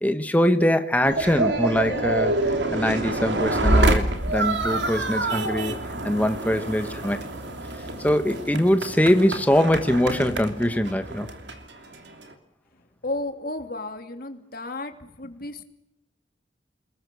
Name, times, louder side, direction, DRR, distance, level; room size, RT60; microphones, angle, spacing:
voice 1, 0.0-2.3 2.7-5.7 6.0-7.2 8.0-11.3, equal, 10° left, 8 dB, 1.2 m, -22 dB
sound 1, 1.0-12.3, right 2 dB, 70° right, 3.2 m, -26 dB
voice 2, 13.0-15.6, left 2 dB, 50° left, 6 dB, 2.8 m, -33 dB
29.5 x 21.5 x 7.0 m, 0.91 s
head